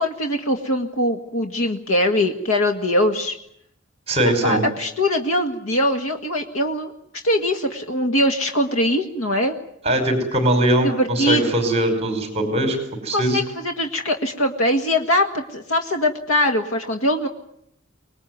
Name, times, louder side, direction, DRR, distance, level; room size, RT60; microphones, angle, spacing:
voice 1, 0.0-3.4 4.4-6.9 7.2-9.6 10.8-11.5 13.1-17.3, left 1 dB, 90° left, 5 dB, 1.9 m, -22 dB
voice 2, 4.1-4.6 9.8-12.8 13.0-13.4, right 1 dB, 30° right, 6 dB, 5.1 m, -21 dB
25.0 x 20.0 x 9.5 m, 0.74 s
head